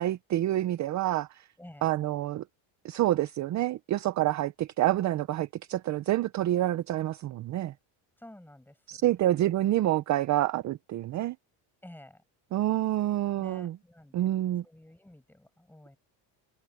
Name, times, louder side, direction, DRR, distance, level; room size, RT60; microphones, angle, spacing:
voice 1, 0.0-1.4 1.8-2.4 2.8-7.7 8.9-11.4 12.5-13.8 14.1-14.6, right 14 dB, 40° right, 0.6 m, -27 dB
voice 2, 1.6-1.9 8.2-9.0 11.8-12.2 13.4-14.3 14.6-16.0, left 1 dB, 5° left, 7.8 m, -51 dB
cardioid pair, 145°, 47 cm